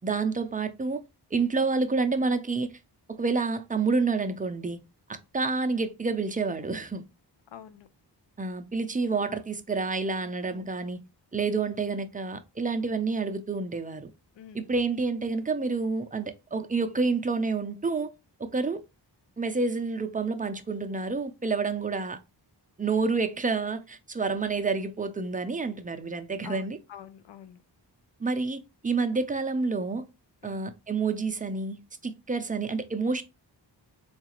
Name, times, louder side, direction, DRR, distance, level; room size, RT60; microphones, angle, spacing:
voice 1, 0.0-1.0 1.3-2.7 3.1-4.8 5.1-7.0 8.4-11.0 11.3-14.1 14.5-18.1 18.4-18.8 19.4-22.2 22.8-26.8 28.2-30.0 30.4-33.2, right 4 dB, 20° right, 0.4 m, -29 dB
voice 2, 7.5-7.9 10.5-10.7 14.4-14.7 26.4-27.6 30.4-30.7, left 9 dB, 80° left, 0.5 m, -47 dB
3.9 x 2.4 x 2.9 m
wide cardioid pair, 75°, 42 cm